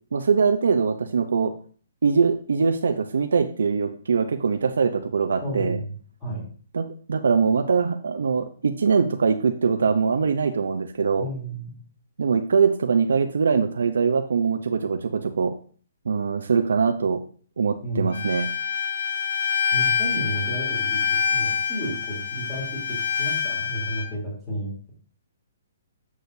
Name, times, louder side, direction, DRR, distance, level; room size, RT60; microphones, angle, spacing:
voice 1, 0.1-1.5 2.0-5.8 6.7-11.3 12.2-15.5 16.1-17.2 17.6-18.5, right 5 dB, 85° right, 6 dB, 0.7 m, -22 dB
voice 2, 5.4-5.9 6.2-6.5 11.2-11.8 17.8-18.3 19.7-24.2 24.5-24.9, right 1 dB, 15° left, -6 dB, 3.2 m, -32 dB
Bowed string instrument, 18.1-24.1, left 7 dB, 65° left, 0.7 m, -26 dB
8.4 x 6.2 x 2.7 m, 0.43 s
hypercardioid pair, 160°, 0 cm